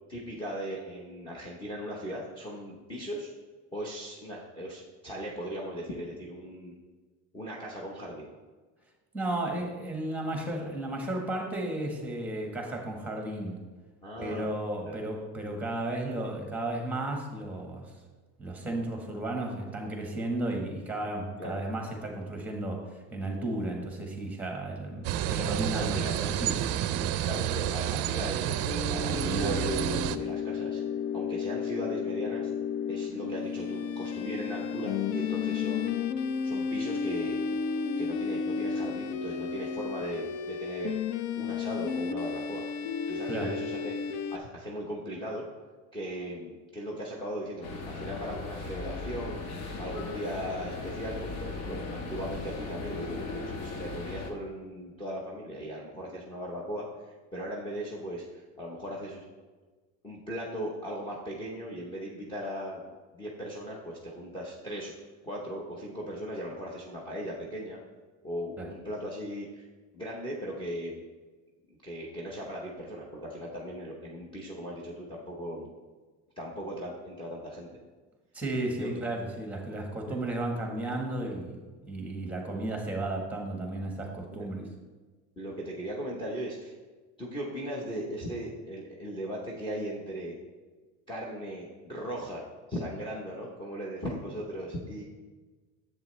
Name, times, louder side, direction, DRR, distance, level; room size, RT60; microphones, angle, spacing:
voice 1, 0.1-3.3 3.7-6.7 7.3-8.3 14.0-14.6 14.8-15.0 21.4-21.6 25.7-26.1 27.2-30.8 31.1-32.5 32.9-35.9 36.4-37.6 37.9-42.7 43.1-45.4 45.9-59.2 60.0-64.9 65.2-67.8 68.2-69.7 69.9-71.0 71.7-75.7 76.4-77.7 78.8-79.0 80.0-80.1 80.9-81.0 84.4-84.7 85.4-86.7 87.2-90.3 91.1-95.0, equal, 15° left, -3 dB, 0.9 m, -38 dB
voice 2, 9.1-13.6 14.2-17.9 18.4-27.2 43.3-43.5 68.6-68.7 78.3-84.7, right 1 dB, 5° right, 1 dB, 1.4 m, -34 dB
sound 1, 25.0-30.2, right 11 dB, 50° right, 0.5 m, -29 dB
sound 2, 28.6-44.4, left 6 dB, 70° left, 0.6 m, -32 dB
sound 3, 47.6-54.3, left 3 dB, 85° left, 1.4 m, -37 dB
10.5 x 7.6 x 3.2 m, 1.3 s
cardioid pair, 160°, 33 cm